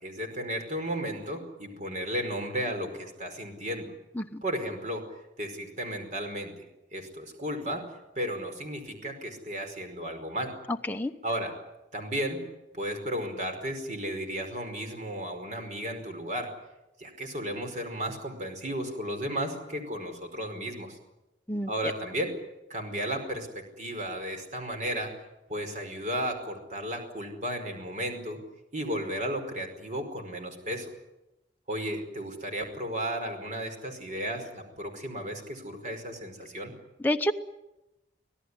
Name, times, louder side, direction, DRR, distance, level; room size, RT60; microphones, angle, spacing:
voice 1, 0.0-3.9 4.4-5.0 5.4-6.6 6.9-7.9 8.2-10.5 11.2-11.5 11.9-12.4 12.7-16.5 17.0-21.0 21.7-22.3 22.7-25.1 25.5-28.4 28.7-30.9 31.7-36.7, equal, 45° right, 6 dB, 5.0 m, -34 dB
voice 2, 4.2-4.4 10.9-11.1 21.5-21.7 37.0-37.3, left 1 dB, 10° left, 3 dB, 0.9 m, -28 dB
26.0 x 17.0 x 9.8 m, 0.96 s
head